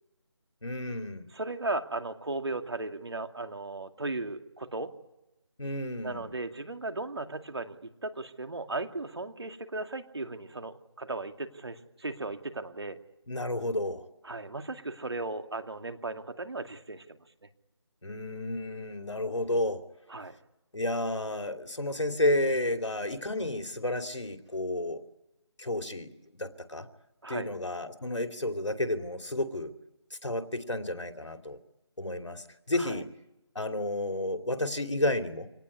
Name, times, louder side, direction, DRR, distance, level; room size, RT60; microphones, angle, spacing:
voice 1, 0.6-1.2 5.6-6.3 13.3-14.1 18.0-19.8 20.7-25.0 25.6-26.1 26.4-26.9 27.3-29.7 30.2-31.6 32.0-33.1 33.5-35.5, left 1 dB, 80° left, 6 dB, 2.8 m, -31 dB
voice 2, 1.3-4.9 6.0-7.8 8.0-13.0 14.2-17.2 20.1-20.3 27.2-27.5 32.8-33.0, right 2 dB, 60° right, 7 dB, 2.4 m, -36 dB
25.5 x 18.5 x 9.8 m, 0.94 s
figure-of-eight pair, 170°, 15 cm